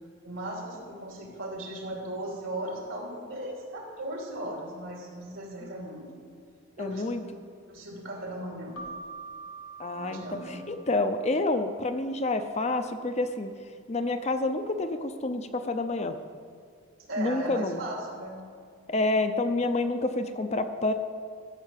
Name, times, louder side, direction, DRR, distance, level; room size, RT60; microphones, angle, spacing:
voice 1, 0.2-6.1 6.8-7.0 7.7-8.8 9.9-10.6 17.1-18.4, right 1 dB, 80° right, -1 dB, 2.9 m, -37 dB
voice 2, 6.8-7.2 9.8-10.2 10.7-13.5 13.9-16.2 17.2-17.8 18.9-20.9, left 2 dB, 30° left, 8 dB, 0.6 m, -28 dB
Keyboard (musical), 8.8-11.3, right 3 dB, 85° left, 1.3 m, -44 dB
13.0 x 6.4 x 7.4 m, 2.2 s
head